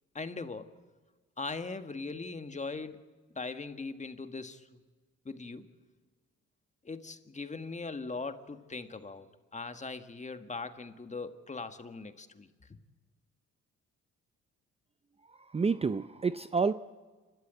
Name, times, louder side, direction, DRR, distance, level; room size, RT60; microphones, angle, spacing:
voice 1, 0.1-0.7 1.4-3.0 3.3-4.7 5.2-5.6 6.8-12.8, left 3 dB, 25° left, 9 dB, 1.6 m, -40 dB
voice 2, 15.3-16.7, right 5 dB, 20° right, 12 dB, 0.6 m, -29 dB
28.5 x 13.0 x 9.0 m, 1.3 s
cardioid pair, 90°, 30 cm